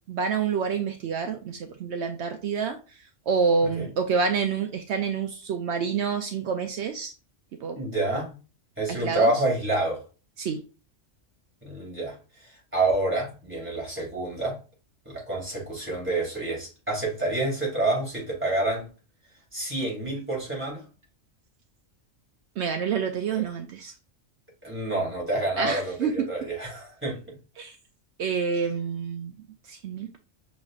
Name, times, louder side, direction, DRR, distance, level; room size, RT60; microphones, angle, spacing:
voice 1, 0.1-7.1 7.6-7.8 8.9-9.4 10.4-10.6 22.6-23.9 25.6-26.3 27.6-27.8 28.2-30.2, right 5 dB, 70° right, 0.8 m, -28 dB
voice 2, 7.7-8.4 8.8-10.0 11.6-14.6 15.1-18.9 19.5-20.8 24.6-27.4, right 2 dB, 10° right, 2.3 m, -28 dB
6.2 x 3.1 x 2.3 m
omnidirectional pair, 1.2 m